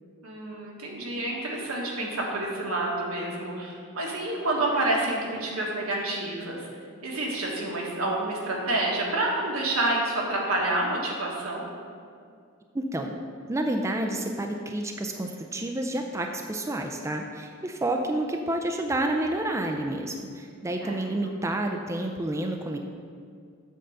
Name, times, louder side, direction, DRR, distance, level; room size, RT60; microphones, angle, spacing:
voice 1, 0.2-6.7 7.0-11.7 20.8-21.0, right 2 dB, 80° right, -2 dB, 1.6 m, -28 dB
voice 2, 12.7-13.2 13.5-22.8, right 1 dB, 15° right, 3 dB, 0.4 m, -29 dB
7.8 x 3.7 x 6.6 m, 2.2 s
head